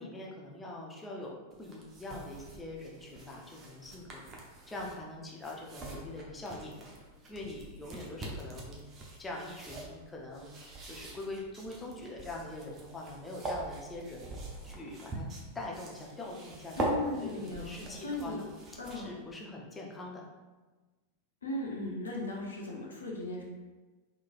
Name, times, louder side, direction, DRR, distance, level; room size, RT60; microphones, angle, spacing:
voice 1, 0.0-4.3 4.7-6.8 7.3-8.9 9.2-10.6 10.8-14.3 14.6-15.2 15.5-18.5 18.9-20.3, left 2 dB, 15° left, -2 dB, 0.7 m, -43 dB
sound 1, 1.5-19.2, right 1 dB, 30° right, 0.7 m, -43 dB
voice 2, 16.8-18.4 18.8-19.1 21.4-23.4, left 2 dB, 70° left, -2 dB, 0.6 m, -37 dB
3.7 x 3.1 x 2.5 m, 1.2 s
figure-of-eight pair, 90°, 0 cm